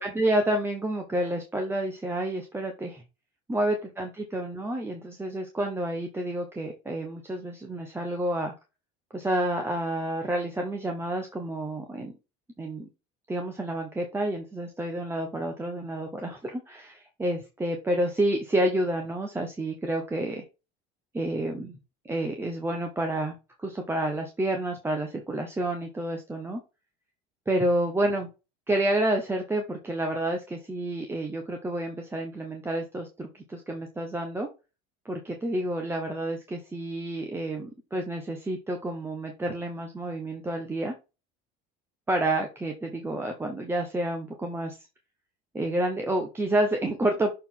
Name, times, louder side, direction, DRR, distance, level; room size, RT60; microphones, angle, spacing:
voice 1, 0.0-3.0 3.5-8.5 9.1-12.1 12.6-12.9 13.3-20.4 21.1-21.8 22.0-26.6 27.5-28.3 28.7-34.5 35.0-40.9 42.1-44.8 45.5-47.3, right 1 dB, 10° right, 3 dB, 1.1 m, -29 dB
6.7 x 3.9 x 3.7 m, 0.28 s
cardioid pair, 130°, 20 cm